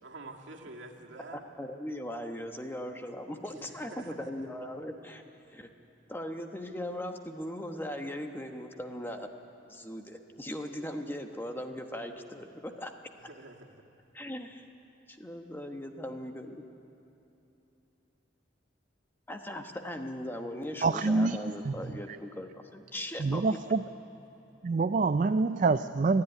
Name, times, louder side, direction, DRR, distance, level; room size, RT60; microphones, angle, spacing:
voice 1, 0.0-1.4 3.4-4.5 13.2-13.8, right 2 dB, 80° right, 0 dB, 2.1 m, -48 dB
voice 2, 1.3-5.2 5.5-5.7 6.1-9.3 9.7-12.9 14.1-14.6 15.1-16.6 19.3-23.4, left 1 dB, 10° left, 5 dB, 1.0 m, -39 dB
voice 3, 20.8-21.4 21.7-21.8 23.2-23.8 24.6-26.2, right 3 dB, 40° right, 10 dB, 0.4 m, -26 dB
28.0 x 10.5 x 9.8 m, 3.0 s
head